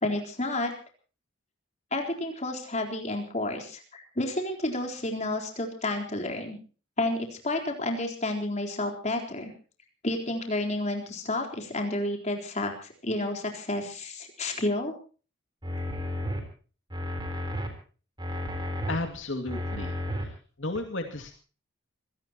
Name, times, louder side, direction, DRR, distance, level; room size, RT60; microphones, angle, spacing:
voice 1, 0.0-0.7 1.9-6.6 7.0-9.5 10.0-14.9, left 2 dB, 35° left, 2 dB, 4.0 m, -30 dB
sound 1, 15.6-16.4 16.9-17.7 18.2-19.0 19.5-20.2 20.8-20.9, left 1 dB, 20° right, 3.9 m, -32 dB
voice 2, 18.9-19.9 20.2-21.4, left 2 dB, 65° left, 5 dB, 2.4 m, -34 dB
25.5 x 17.5 x 3.0 m, 0.38 s
head